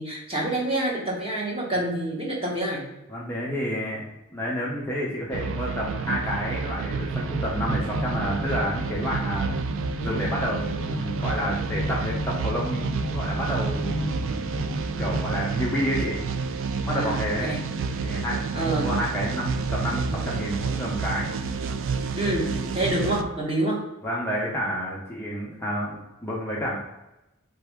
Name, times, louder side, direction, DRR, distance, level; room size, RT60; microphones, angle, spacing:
voice 1, 0.0-2.9 16.9-17.6 18.5-19.0 22.1-23.9, right 1 dB, 25° right, -3 dB, 1.2 m, -27 dB
voice 2, 3.1-4.0 4.3-9.6 10.0-14.6 15.0-16.2 16.8-17.6 18.0-21.3 24.0-26.8, equal, 10° left, -5 dB, 0.7 m, -30 dB
sound 1, 5.3-23.2, right 5 dB, 60° right, 0.3 m, -30 dB
sound 2, 7.0-15.4, left 1 dB, 65° left, 0.7 m, -34 dB
4.0 x 3.4 x 3.5 m, 0.95 s
head